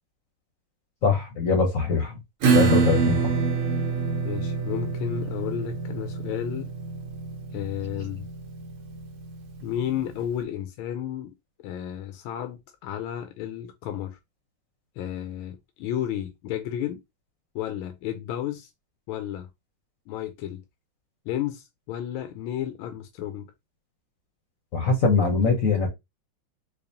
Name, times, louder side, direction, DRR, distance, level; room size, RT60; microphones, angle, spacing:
voice 1, 1.0-2.2 2.5-3.3 24.7-25.9, left 4 dB, 55° left, 1.0 m, -22 dB
Acoustic guitar / Strum, 2.4-9.6, right 5 dB, 80° right, 1.7 m, -26 dB
voice 2, 4.2-6.7 7.5-8.3 9.6-11.3 11.6-14.2 15.0-17.0 17.5-18.7 19.1-19.5 20.1-20.6 21.3-23.5, left 11 dB, 85° left, 1.4 m, -32 dB
4.7 x 2.5 x 2.6 m
omnidirectional pair, 2.2 m